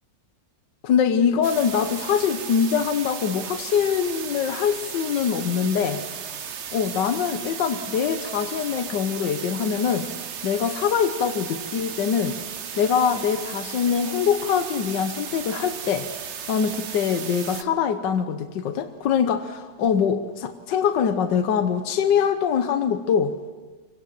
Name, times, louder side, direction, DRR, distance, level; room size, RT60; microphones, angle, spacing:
voice 1, 0.8-6.0 6.7-10.1 10.4-12.4 12.8-16.1 16.5-23.3, left 7 dB, 80° left, 8 dB, 1.6 m, -23 dB
sound 1, 1.4-17.6, right 7 dB, 50° right, 1.0 m, -35 dB
25.0 x 18.0 x 7.6 m, 1.3 s
omnidirectional pair, 1.9 m